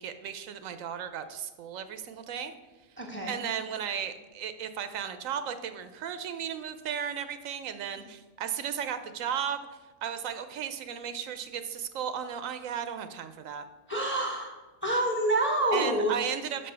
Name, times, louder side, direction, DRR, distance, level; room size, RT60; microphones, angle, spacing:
voice 1, 0.0-2.5 3.3-9.6 10.0-13.7 15.7-16.7, right 8 dB, 80° right, 10 dB, 1.0 m, -35 dB
voice 2, 3.0-3.4 13.9-14.5 14.8-16.1, right 1 dB, 10° left, 0 dB, 1.3 m, -27 dB
5.7 x 5.5 x 6.7 m, 1.1 s
omnidirectional pair, 1.4 m